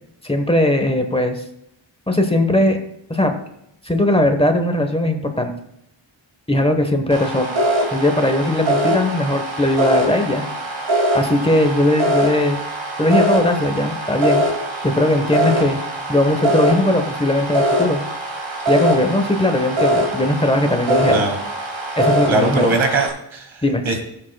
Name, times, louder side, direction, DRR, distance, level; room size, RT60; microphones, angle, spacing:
voice 1, 0.2-1.4 2.1-2.8 3.1-3.4 3.8-5.5 6.5-7.5 7.9-10.4 11.1-12.6 13.0-14.4 14.8-15.8 16.1-18.0 18.7-21.2 21.9-22.8 23.6-23.8, left 1 dB, 10° left, 6 dB, 1.0 m, -19 dB
sound 1, 7.1-23.1, right 1 dB, 70° right, 2.1 m, -22 dB
voice 2, 21.1-21.4 22.3-24.0, right 3 dB, 90° right, 4 dB, 2.0 m, -21 dB
17.0 x 7.8 x 2.2 m, 0.79 s
wide cardioid pair, 125°, 46 cm